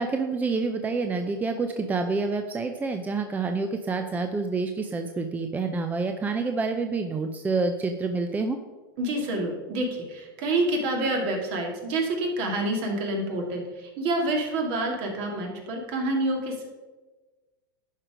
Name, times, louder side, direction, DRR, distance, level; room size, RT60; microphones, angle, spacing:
voice 1, 0.0-8.6, right 4 dB, 15° right, 6 dB, 0.6 m, -28 dB
voice 2, 9.0-16.7, right 2 dB, 50° right, 2 dB, 2.3 m, -28 dB
11.0 x 5.0 x 5.0 m, 1.3 s
hypercardioid pair, 105°, 12 cm